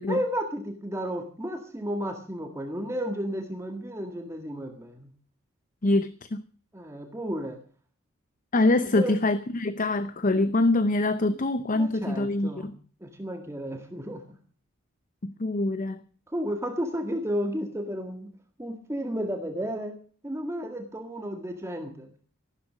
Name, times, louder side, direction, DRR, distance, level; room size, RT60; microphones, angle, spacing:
voice 1, 0.1-5.1 6.7-7.6 8.8-9.1 11.7-12.7 13.0-14.2 16.3-18.3 18.6-19.9 20.2-22.1, equal, 15° right, 4 dB, 1.9 m, -32 dB
voice 2, 5.8-6.4 8.5-12.7 15.2-16.0, left 2 dB, 40° left, 13 dB, 0.7 m, -24 dB
14.5 x 12.5 x 6.3 m, 0.43 s
head